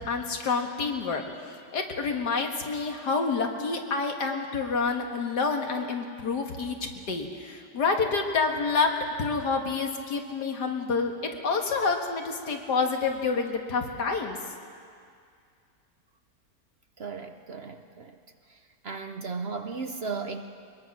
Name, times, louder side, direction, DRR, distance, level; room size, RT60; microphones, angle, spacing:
voice 1, 0.1-8.9 9.2-14.4, left 4 dB, 85° left, 3 dB, 2.3 m, -28 dB
voice 2, 17.0-18.2 18.5-20.4, right 4 dB, 50° right, 7 dB, 0.9 m, -36 dB
22.5 x 21.5 x 6.1 m, 2.3 s
omnidirectional pair, 1.7 m